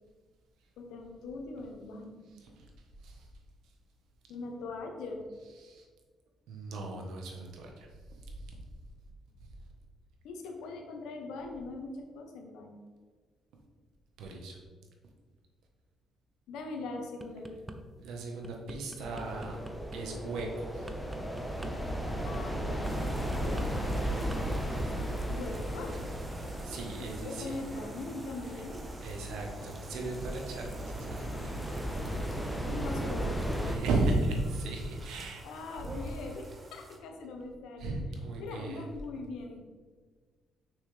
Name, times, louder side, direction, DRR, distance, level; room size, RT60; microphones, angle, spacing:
voice 1, 0.8-2.3 4.3-5.2 10.2-12.8 16.5-17.6 22.2-23.0 23.4-23.7 25.3-26.0 27.0-28.9 32.7-33.4 35.4-37.9 38.4-39.6, left 3 dB, 85° left, 3 dB, 1.0 m, -41 dB
voice 2, 6.5-7.9 8.2-8.6 14.2-14.6 18.0-19.6 19.9-20.9 26.6-27.6 29.0-31.5 31.9-32.0 33.6-35.4 35.8-36.0 37.8-38.9, right 2 dB, 80° right, 1 dB, 1.3 m, -36 dB
sound 1, 17.0-17.8 18.2-24.4 24.7-25.0, right 2 dB, 15° right, 0.7 m, -46 dB
sound 2, 19.0-33.8, equal, 5° left, 1.1 m, -36 dB
sound 3, 22.8-37.0, right 2 dB, 35° right, 1.1 m, -51 dB
6.2 x 5.9 x 3.4 m, 1.5 s
cardioid pair, 85°, 0 cm